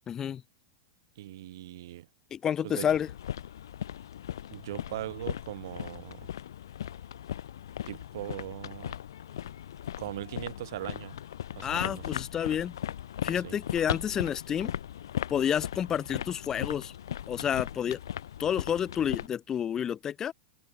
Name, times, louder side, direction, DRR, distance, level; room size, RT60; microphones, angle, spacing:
voice 1, 0.1-0.4 2.3-3.1 11.6-12.7 13.2-14.7 15.3-16.9 17.3-18.0 18.4-20.3, left 9 dB, 25° left, 2.2 m, -29 dB
voice 2, 1.2-2.1 2.6-2.9 4.5-6.3 7.8-9.0 10.0-11.2 11.6-12.1 13.4-13.6, right 14 dB, 65° right, 4.9 m, -39 dB
sound 1, 2.9-19.3, left 10 dB, 80° left, 1.0 m, -38 dB
open air
hypercardioid pair, 120°, 2 cm